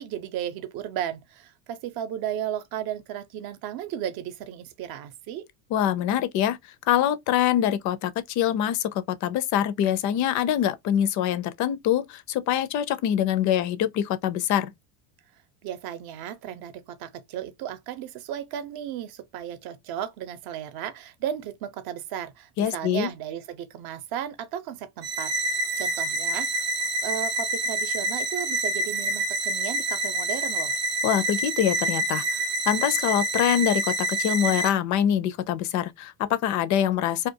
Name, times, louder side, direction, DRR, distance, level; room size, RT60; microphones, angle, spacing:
voice 1, 0.0-5.4 15.6-26.6 27.0-30.8, right 10 dB, 50° right, 0.7 m, -34 dB
voice 2, 5.7-6.6 6.9-14.7 22.6-23.1 31.0-32.2 32.7-37.3, left 10 dB, 40° left, 0.4 m, -24 dB
sound 1, 25.0-34.7, right 2 dB, 25° right, 0.4 m, -27 dB
2.4 x 2.3 x 2.6 m
supercardioid pair, 115°, 46 cm